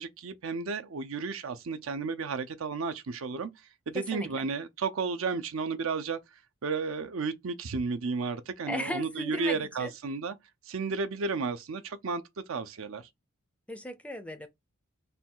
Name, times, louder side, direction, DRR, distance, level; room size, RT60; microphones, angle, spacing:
voice 1, 0.0-3.5 3.9-6.2 6.6-10.3 10.7-12.2 12.5-13.1, right 4 dB, 65° right, 0.5 m, -33 dB
voice 2, 3.9-4.5 8.7-9.9 13.7-14.5, left 1 dB, 5° left, 0.4 m, -36 dB
3.3 x 2.3 x 4.3 m
head